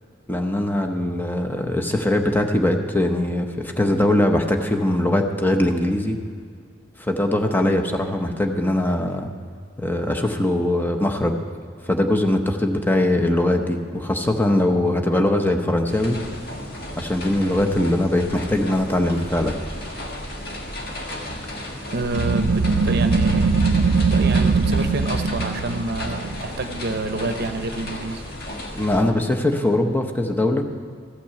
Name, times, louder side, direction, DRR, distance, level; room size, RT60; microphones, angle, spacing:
voice 1, 0.3-6.2 7.0-9.3 9.8-11.4 11.8-16.2 17.0-19.6 28.8-30.7, left 1 dB, 10° left, 4 dB, 0.8 m, -21 dB
sound 1, 15.9-29.0, left 1 dB, 50° left, 1.6 m, -34 dB
voice 2, 21.9-23.7 24.0-28.2, right 2 dB, 55° right, 8 dB, 0.8 m, -28 dB
sound 2, 22.1-27.4, right 4 dB, 80° right, 0.4 m, -21 dB
14.5 x 6.0 x 8.2 m, 2.1 s
head